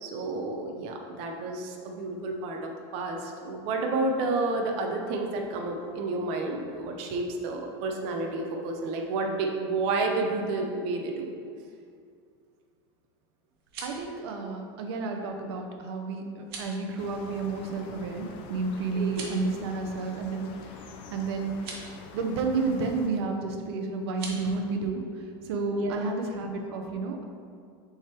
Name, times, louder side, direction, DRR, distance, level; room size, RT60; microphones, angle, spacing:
voice 1, 0.0-11.3 18.9-19.2 25.7-26.0, right 3 dB, 50° right, 2 dB, 0.7 m, -30 dB
sound 1, 13.5-14.1 16.4-16.8 19.0-19.5 21.5-21.9 24.1-24.4, right 4 dB, 70° right, 1.3 m, -41 dB
voice 2, 13.8-21.8 22.1-27.2, right 3 dB, 90° right, 3 dB, 0.7 m, -31 dB
sound 2, 17.0-23.1, left 4 dB, 45° left, 0.5 m, -46 dB
6.4 x 3.6 x 4.4 m, 2.3 s
supercardioid pair, 165°, 13 cm